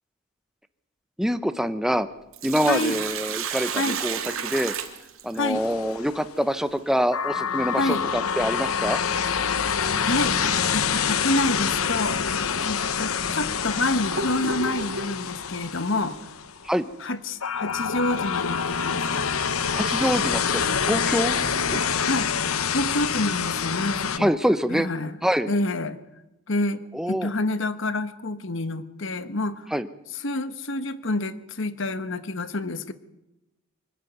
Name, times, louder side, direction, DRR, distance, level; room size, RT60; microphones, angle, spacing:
voice 1, 1.2-2.1 2.4-4.7 5.2-9.0 16.6-16.9 19.7-21.8 24.2-24.9 25.2-25.5 26.9-27.3 29.7-29.9, equal, ahead, 11 dB, 0.8 m, -25 dB
Sink (filling or washing), 2.1-5.7 8.1-8.2 10.1-10.3 10.8-10.9 11.7-11.8 12.5-12.6 13.3-15.2, right 6 dB, 70° right, 2.5 m, -32 dB
voice 2, 2.7-3.0 3.7-4.0 5.3-5.6 7.8-8.1 10.0-10.4 10.7-12.2 12.6-16.2 17.0-19.3 22.0-22.3 22.7-24.4 24.7-25.1 25.5-26.0 26.5-29.7 30.1-32.9, left 2 dB, 60° left, 12 dB, 1.3 m, -28 dB
sound 1, 5.5-6.3 7.1-16.7 17.4-24.2, left 7 dB, 80° left, 1.0 m, -26 dB
24.5 x 12.5 x 9.4 m, 0.96 s
head